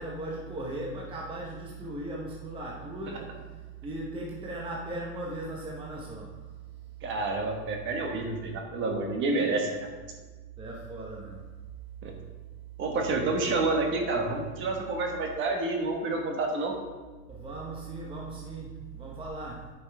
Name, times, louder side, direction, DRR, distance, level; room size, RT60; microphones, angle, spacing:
voice 1, 0.0-3.5 3.8-6.3 10.6-11.4 17.3-19.7, right 2 dB, 15° right, -3 dB, 0.9 m, -37 dB
voice 2, 7.0-9.9 12.0-12.1 12.8-16.7, right 3 dB, 35° right, 2 dB, 1.2 m, -29 dB
9.9 x 5.5 x 3.4 m, 1.3 s
supercardioid pair, 150°, 37 cm